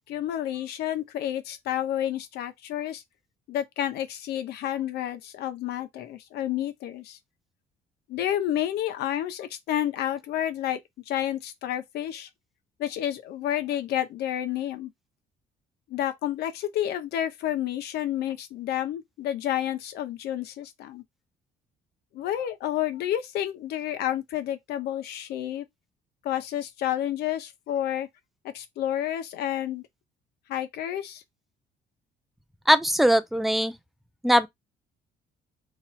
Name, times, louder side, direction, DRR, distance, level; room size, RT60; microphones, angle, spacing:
voice 1, 0.1-3.0 3.5-7.2 8.1-10.8 11.1-12.3 12.8-14.9 15.9-21.0 22.1-25.7 26.2-28.1 28.5-29.8 30.5-31.2, left 11 dB, 75° left, 0.8 m, -30 dB
voice 2, 32.7-33.7 34.2-34.5, equal, ahead, 0.4 m, -20 dB
3.0 x 2.4 x 4.3 m
cardioid pair, 110°, 17 cm